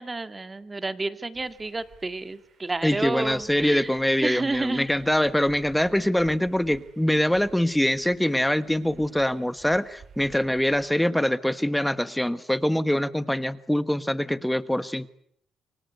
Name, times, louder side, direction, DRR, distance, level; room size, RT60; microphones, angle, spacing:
voice 1, 0.0-3.9 4.2-4.9, right 3 dB, 25° right, 10 dB, 2.1 m, -30 dB
sound 1, 1.3-11.0, right 6 dB, 60° right, 6.2 m, -53 dB
voice 2, 2.8-15.1, left 1 dB, 5° left, 14 dB, 1.3 m, -24 dB
28.5 x 24.0 x 8.2 m, 0.69 s
cardioid pair, 90°, 0 cm